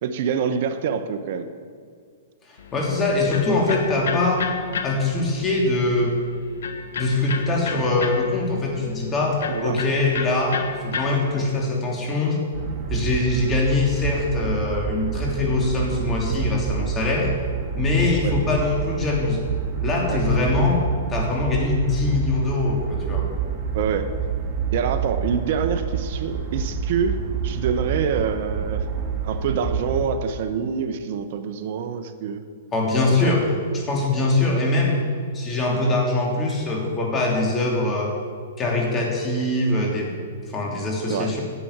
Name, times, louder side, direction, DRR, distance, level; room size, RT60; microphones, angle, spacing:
voice 1, 0.0-1.5 9.5-9.8 18.2-18.4 20.1-20.2 23.7-24.1 24.7-28.9 29.2-32.4 33.2-33.4 41.1-41.3, right 7 dB, 55° right, 10 dB, 1.0 m, -26 dB
voice 2, 2.5-4.4 4.8-6.1 7.0-9.4 9.6-10.6 10.8-12.4 12.9-17.3 17.8-19.4 19.8-20.8 21.1-23.2 32.7-33.5 33.7-35.0 35.3-38.1 38.6-40.1 40.5-41.4, left 2 dB, 20° left, -1 dB, 3.2 m, -22 dB
Electric guitar, 2.6-11.7, left 5 dB, 70° left, 1.1 m, -33 dB
sound 1, 12.5-30.0, right 6 dB, 35° right, 1.7 m, -28 dB
11.0 x 7.9 x 7.3 m, 2.1 s
hypercardioid pair, 120°, 0 cm